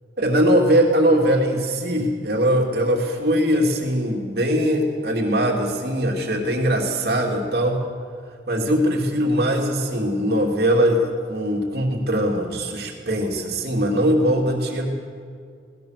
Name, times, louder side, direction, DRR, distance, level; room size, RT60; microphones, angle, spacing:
voice 1, 0.2-7.8 8.5-14.9, equal, 55° right, 0 dB, 2.9 m, -21 dB
24.0 x 18.5 x 6.7 m, 2.2 s
head